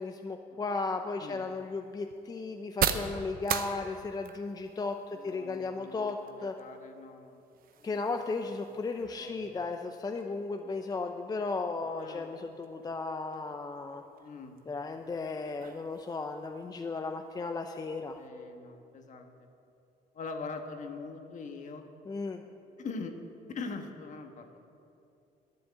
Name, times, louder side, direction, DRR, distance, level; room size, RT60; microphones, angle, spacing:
voice 1, 0.0-6.6 7.8-14.0 14.7-18.2 22.1-22.4, left 3 dB, 20° left, 5 dB, 0.6 m, -35 dB
sound 1, 0.7-18.3, right 9 dB, 60° right, 0.8 m, -42 dB
voice 2, 5.1-7.5 7.8-8.0 8.4-8.8 9.2-9.6 11.9-12.4 12.7-12.8 14.2-14.6 18.2-19.3 20.1-21.8 22.4-22.5 22.8-23.1 23.5-24.6, left 4 dB, 45° left, 5 dB, 1.3 m, -43 dB
11.0 x 7.7 x 9.5 m, 2.7 s
cardioid pair, 110°, 17 cm